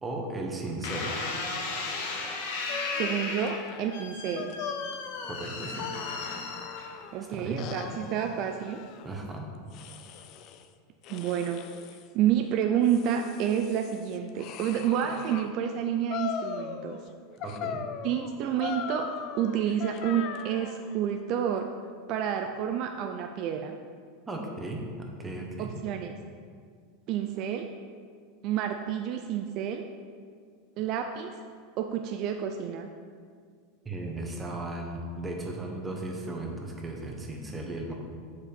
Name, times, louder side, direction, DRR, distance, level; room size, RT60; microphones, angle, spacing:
voice 1, 0.0-1.2 5.2-5.9 7.3-7.6 9.0-9.5 17.4-17.8 24.3-25.7 33.8-37.9, right 2 dB, 15° right, 0 dB, 1.1 m, -36 dB
sound 1, 0.8-7.2 7.9-8.3, left 3 dB, 75° left, 1.4 m, -35 dB
sound 2, 2.7-7.2 7.6-9.1 9.7-10.6 11.0-12.0 12.6-15.5 16.1-17.1 17.4-20.9, left 7 dB, 45° left, 0.4 m, -39 dB
voice 2, 3.0-4.6 7.1-8.8 11.1-11.7 12.1-17.0 18.0-21.7 22.1-23.8 25.6-26.2 27.1-27.7 28.4-29.9 30.8-31.4 31.8-32.9, right 9 dB, 45° right, 5 dB, 0.4 m, -29 dB
7.1 x 4.8 x 5.2 m, 2.1 s
supercardioid pair, 135°, 0 cm